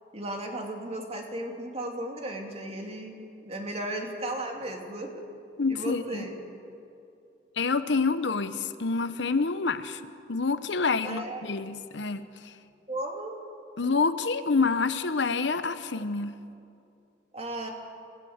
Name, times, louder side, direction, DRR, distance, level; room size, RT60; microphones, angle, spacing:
voice 1, 0.1-5.2 5.7-6.4 11.0-11.5 12.9-13.3 17.3-17.7, right 1 dB, 35° right, 2 dB, 2.7 m, -35 dB
voice 2, 5.6-6.2 7.6-10.0 10.3-12.5 13.8-16.4, left 4 dB, 70° left, 12 dB, 0.9 m, -27 dB
27.0 x 17.0 x 8.0 m, 2.6 s
head